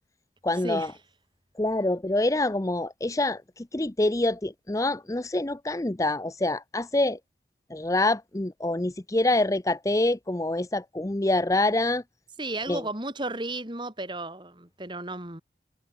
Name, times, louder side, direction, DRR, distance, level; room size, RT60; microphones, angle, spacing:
voice 1, 0.4-0.9 1.6-7.2 7.7-12.0 12.7-12.8, left 2 dB, 15° left, 0.6 m, -26 dB
voice 2, 12.4-15.4, right 2 dB, 25° right, 3.5 m, -33 dB
head